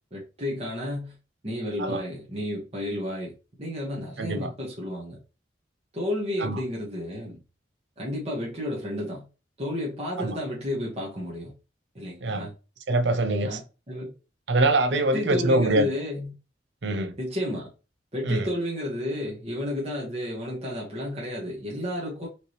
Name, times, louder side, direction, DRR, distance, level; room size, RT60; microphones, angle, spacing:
voice 1, 0.1-1.1 1.4-3.3 3.6-5.2 5.9-7.4 8.0-9.2 9.6-11.5 11.9-12.5 13.4-14.1 14.9-16.3 17.2-17.7 18.1-22.3, left 1 dB, 35° right, 1.5 m, -31 dB
voice 2, 4.2-4.5 6.4-6.6 10.2-10.3 12.2-12.5 12.9-13.6 14.5-15.9 16.8-17.1 18.2-18.5, right 2 dB, 70° right, 0.7 m, -24 dB
5.0 x 3.3 x 3.0 m
head